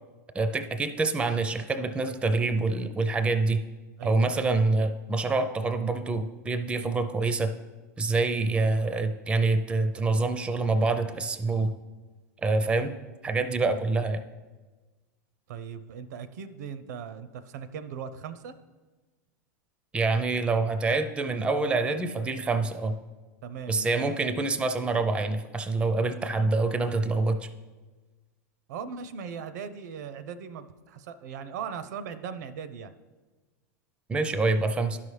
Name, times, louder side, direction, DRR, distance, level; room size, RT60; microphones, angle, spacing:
voice 1, 0.3-3.6 4.0-7.5 8.0-11.8 12.4-13.0 13.2-14.2 19.9-22.9 23.7-27.5 34.1-35.0, right 3 dB, 10° right, 9 dB, 0.4 m, -26 dB
voice 2, 4.0-4.5 15.5-18.5 23.4-24.3 28.7-32.9, right 7 dB, 75° right, 12 dB, 0.5 m, -39 dB
11.5 x 5.6 x 3.2 m, 1.3 s
hypercardioid pair, 120°, 9 cm